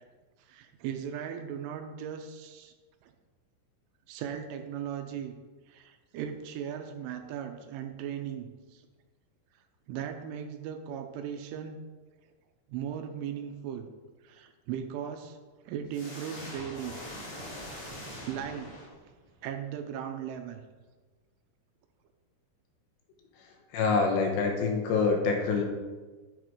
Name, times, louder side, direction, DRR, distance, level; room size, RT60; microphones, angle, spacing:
voice 1, 0.5-2.7 3.0-3.1 4.1-5.3 5.7-8.8 9.9-11.8 12.7-13.9 14.2-15.4 15.7-17.0 18.3-18.7 19.4-20.6, right 8 dB, 80° right, 6 dB, 3.1 m, -37 dB
sound 1, 15.9-19.3, left 1 dB, 30° left, 3.7 m, -43 dB
voice 2, 23.4-25.6, left 4 dB, 75° left, 2 dB, 3.1 m, -26 dB
11.5 x 6.5 x 4.6 m, 1.3 s
omnidirectional pair, 5.7 m